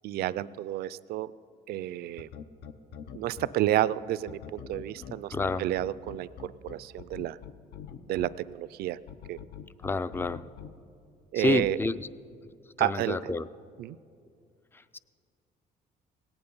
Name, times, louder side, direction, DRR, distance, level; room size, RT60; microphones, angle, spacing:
voice 1, 0.0-1.3 1.7-2.3 3.1-5.3 5.6-7.4 8.1-9.0 9.3-9.4 11.3-11.8 12.8-13.3 13.8-14.0, right 14 dB, 70° right, 18 dB, 0.4 m, -30 dB
sound 1, 2.2-3.5 4.3-8.3 9.1-10.7 11.5-11.7, left 8 dB, 75° left, 0.7 m, -43 dB
voice 2, 5.0-5.6 9.8-10.5 11.4-12.1 12.8-13.5 14.9-15.0, left 3 dB, 15° left, 16 dB, 0.3 m, -29 dB
18.0 x 8.9 x 5.4 m, 2.4 s
cardioid pair, 110°, 17 cm